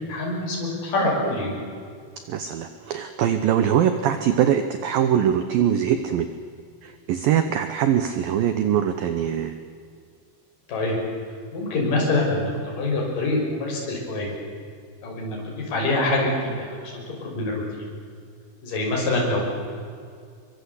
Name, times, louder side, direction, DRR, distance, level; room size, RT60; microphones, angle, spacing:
voice 1, 0.1-1.6 10.7-11.0 11.5-12.5 12.8-14.3 15.0-17.6 18.6-19.4, left 2 dB, 45° left, -2 dB, 7.5 m, -25 dB
voice 2, 2.3-6.3 6.8-9.6, right 9 dB, 80° right, 9 dB, 2.0 m, -22 dB
25.0 x 23.5 x 8.4 m, 2.2 s
omnidirectional pair, 5.6 m